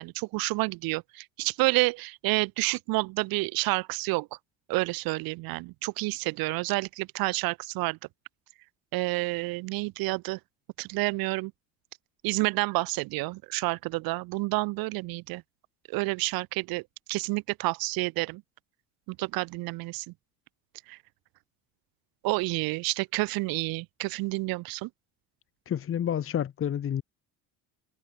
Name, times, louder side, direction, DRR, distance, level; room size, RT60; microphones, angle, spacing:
voice 1, 0.0-4.3 4.7-8.0 8.9-10.4 10.8-11.5 12.2-15.4 15.9-16.8 17.1-18.4 19.1-20.1 20.9-21.0 22.2-24.9, right 23 dB, 75° right, 1.0 m, -29 dB
voice 2, 25.7-27.0, left 9 dB, 35° left, 1.4 m, -29 dB
cardioid pair, 115°, 35 cm